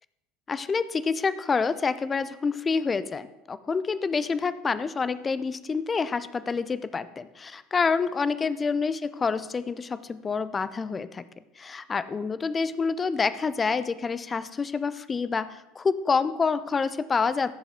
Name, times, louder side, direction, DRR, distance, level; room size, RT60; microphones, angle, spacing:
voice 1, 0.5-11.2 11.6-17.5, left 5 dB, 25° left, 15 dB, 0.6 m, -27 dB
15.5 x 7.0 x 3.8 m, 1.0 s
figure-of-eight pair, 70°, 0 cm